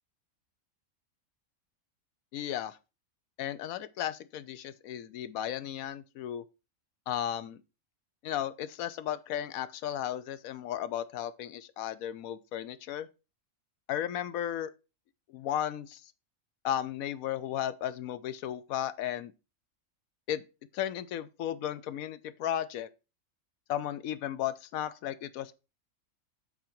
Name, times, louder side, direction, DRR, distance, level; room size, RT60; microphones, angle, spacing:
voice 1, 2.3-2.8 3.4-6.4 7.1-7.6 8.2-13.1 13.9-14.7 15.3-16.0 16.6-19.3 20.3-20.4 20.7-22.9 23.7-25.5, left 11 dB, 80° left, 1.1 m, -34 dB
7.9 x 4.7 x 4.5 m
omnidirectional pair, 1.5 m